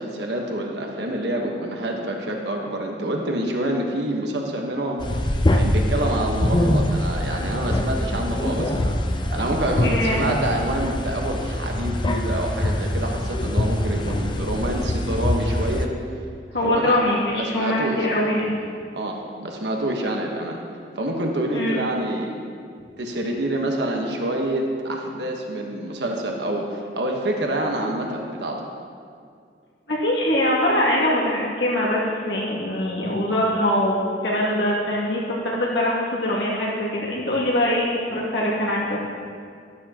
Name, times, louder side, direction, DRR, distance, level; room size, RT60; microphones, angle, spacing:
voice 1, 0.0-5.0 5.5-9.0 9.3-15.9 16.6-17.0 17.3-18.2 18.9-20.6 20.9-22.3 23.0-28.6, right 1 dB, 70° right, 1 dB, 1.3 m, -27 dB
sound 1, 5.0-15.9, left 1 dB, 25° left, 0.6 m, -24 dB
voice 2, 9.8-10.3 16.5-18.6 21.5-21.8 29.9-39.0, left 1 dB, 75° left, -4 dB, 2.4 m, -23 dB
12.0 x 12.0 x 3.0 m, 2.3 s
head